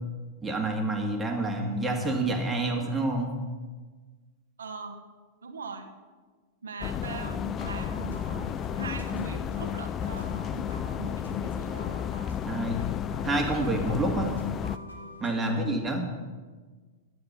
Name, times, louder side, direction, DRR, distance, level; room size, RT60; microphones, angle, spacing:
voice 1, 0.4-3.3 12.4-12.8 13.2-14.3 15.2-16.0, right 2 dB, 15° right, 1 dB, 2.2 m, -28 dB
voice 2, 4.6-5.0 5.4-5.9 6.6-8.5 8.7-11.9 15.4-15.8, right 4 dB, 75° right, 4 dB, 1.5 m, -40 dB
sound 1, 6.8-14.8, left 9 dB, 25° left, 0.4 m, -32 dB
sound 2, 7.6-15.7, left 1 dB, 90° left, 1.7 m, -45 dB
11.5 x 9.8 x 5.6 m, 1.4 s
figure-of-eight pair, 100°, 0 cm